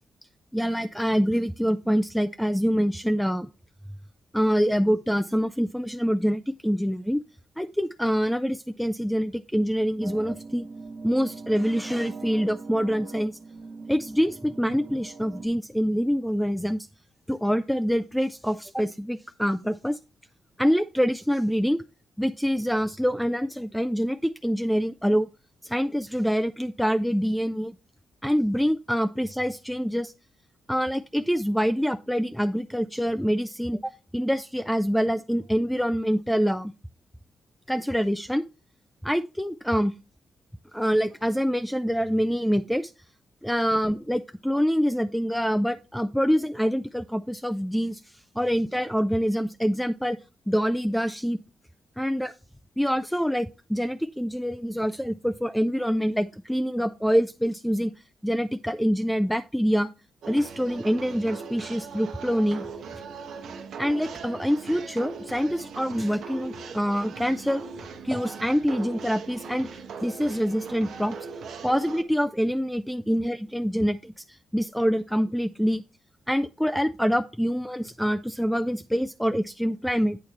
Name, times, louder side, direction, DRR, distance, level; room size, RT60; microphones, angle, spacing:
voice 1, 0.5-3.5 4.3-7.2 7.6-10.7 11.0-13.4 13.9-16.9 17.3-20.0 20.6-21.8 22.2-25.3 25.6-27.8 28.2-30.1 30.7-36.7 37.7-38.4 39.0-39.9 40.7-42.9 43.4-50.2 50.5-51.4 52.0-52.3 52.8-57.9 58.2-59.9 60.3-62.7 63.8-67.6 68.0-69.7 70.0-71.2 71.6-75.8 76.3-80.2, equal, ahead, 10 dB, 0.3 m, -25 dB
sound 1, 10.0-15.5, right 4 dB, 55° right, 1.5 m, -41 dB
sound 2, 60.2-72.0, right 5 dB, 85° right, 1.0 m, -39 dB
8.8 x 3.2 x 5.7 m, 0.31 s
cardioid pair, 85°, 0 cm